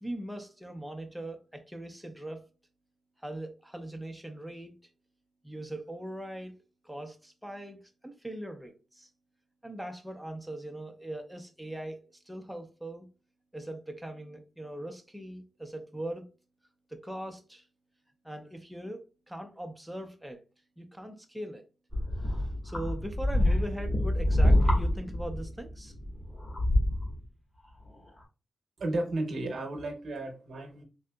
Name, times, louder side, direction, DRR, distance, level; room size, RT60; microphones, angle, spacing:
voice 1, 0.0-2.4 3.2-4.9 5.4-6.6 6.8-9.1 9.6-13.1 13.5-16.3 16.9-17.6 18.2-20.4 20.8-21.6 22.2-25.9, right 1 dB, 5° right, 4 dB, 0.4 m, -40 dB
sound 1, 21.9-27.2 27.9-28.0, left 1 dB, 30° left, 1.4 m, -27 dB
voice 2, 28.8-30.8, right 2 dB, 60° right, 2 dB, 0.7 m, -33 dB
3.4 x 2.8 x 2.2 m, 0.33 s
wide cardioid pair, 105°, 0 cm